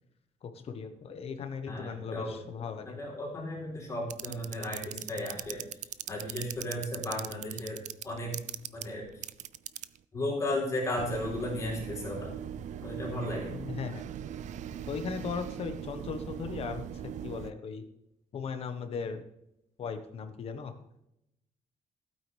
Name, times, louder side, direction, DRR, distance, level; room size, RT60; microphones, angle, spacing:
voice 1, 0.4-3.0 13.5-14.1 14.9-17.8 18.3-19.2 19.8-20.7, left 5 dB, 40° left, 7 dB, 1.4 m, -38 dB
voice 2, 1.7-5.7 6.1-8.4 8.7-9.0 10.1-12.3 12.8-13.5, left 1 dB, 20° left, -2 dB, 3.8 m, -35 dB
sound 1, 4.1-10.0 11.0-17.5, right 10 dB, 55° right, 0.5 m, -39 dB
15.5 x 8.9 x 3.5 m, 0.81 s
cardioid pair, 175°, 15 cm